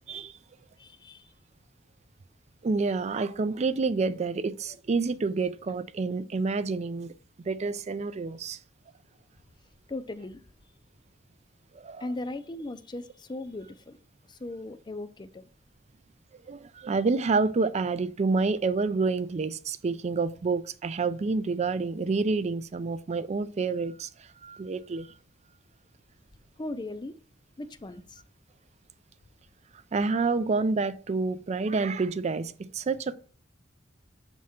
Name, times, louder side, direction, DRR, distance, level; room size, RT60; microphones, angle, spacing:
voice 1, 0.8-1.3 9.9-10.4 12.0-14.0 14.3-15.5 26.6-27.1 27.6-28.2, left 2 dB, 25° left, 0.5 m, -38 dB
voice 2, 2.6-7.1 7.4-8.6 11.7-12.1 16.5-25.1 29.9-33.1, right 4 dB, 35° right, 0.4 m, -28 dB
7.4 x 3.6 x 4.3 m
head